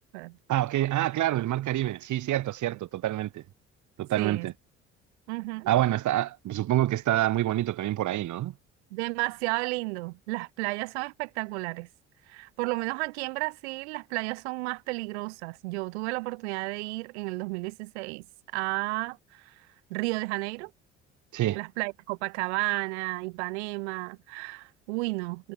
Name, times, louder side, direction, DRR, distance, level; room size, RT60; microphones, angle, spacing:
voice 1, 0.5-3.4 4.0-4.5 5.7-8.5 21.3-21.6, right 14 dB, 55° right, 2.8 m, -27 dB
voice 2, 4.2-4.5 5.3-5.7 8.9-11.9 12.3-18.2 18.5-19.5 19.9-20.7 21.5-25.5, right 25 dB, 75° right, 7.9 m, -32 dB
hypercardioid pair, 55°, 34 cm